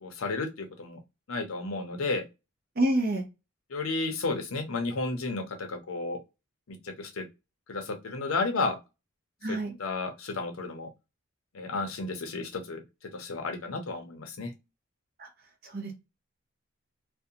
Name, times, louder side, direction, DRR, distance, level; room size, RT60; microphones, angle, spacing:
voice 1, 0.0-1.0 1.3-2.2 3.7-6.2 6.8-7.2 7.7-8.8 9.5-10.9 11.5-12.8 13.1-14.5, left 3 dB, 80° left, 0.6 m, -32 dB
voice 2, 2.8-3.2 9.4-9.8 15.2-15.3 15.6-15.9, right 1 dB, 45° right, 0.7 m, -27 dB
2.5 x 2.2 x 2.7 m
head